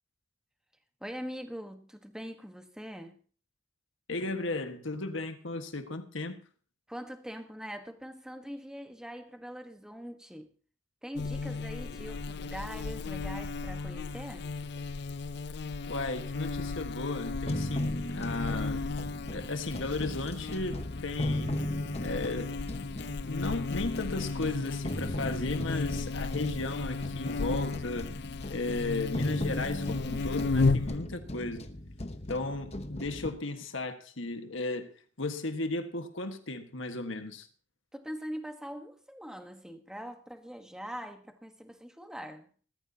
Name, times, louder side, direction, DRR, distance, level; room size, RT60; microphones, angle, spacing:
voice 1, 1.0-3.2 6.9-10.5 11.0-14.5 37.9-42.5, equal, 5° right, 1.3 m, -42 dB
voice 2, 4.1-6.4 15.9-18.9 19.3-21.5 22.0-22.6 23.0-28.1 28.5-31.6 32.3-34.9 35.2-37.5, left 2 dB, 80° left, 1.6 m, -35 dB
Buzz, 11.2-31.0, left 3 dB, 55° left, 0.5 m, -34 dB
sound 1, 17.5-33.3, left 1 dB, 35° left, 1.0 m, -38 dB
20.5 x 13.5 x 2.9 m
head